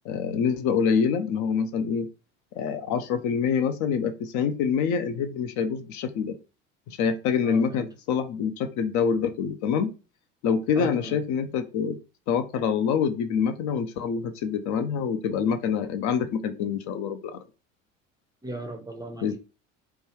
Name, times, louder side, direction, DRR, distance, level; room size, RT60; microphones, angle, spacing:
voice 1, 0.0-2.1 2.5-6.3 6.9-9.9 10.4-12.0 12.3-17.4 19.2-19.4, left 6 dB, 50° left, 0.5 m, -26 dB
voice 2, 7.4-7.9 10.8-11.2 18.4-19.4, right 1 dB, 10° right, 0.5 m, -37 dB
3.1 x 2.2 x 3.1 m
hypercardioid pair, 70°, 38 cm